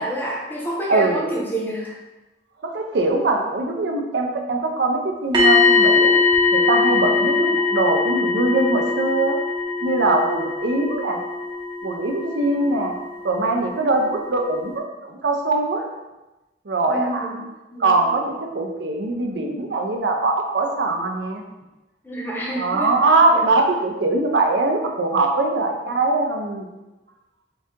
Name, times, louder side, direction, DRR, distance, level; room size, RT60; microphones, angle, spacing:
voice 1, 0.0-2.0 16.9-17.4 17.7-18.0 22.0-22.9 23.3-23.5, right 1 dB, 10° left, -3 dB, 0.7 m, -28 dB
voice 2, 0.9-1.2 2.6-6.1 6.5-9.4 9.8-11.2 11.8-12.9 13.2-15.9 16.7-17.3 17.8-21.4 22.6-26.7, right 2 dB, 75° right, 2 dB, 0.6 m, -22 dB
sound 1, 5.3-13.2 13.5-13.7, left 4 dB, 25° right, 0.7 m, -21 dB
3.8 x 2.7 x 3.6 m, 1.1 s
head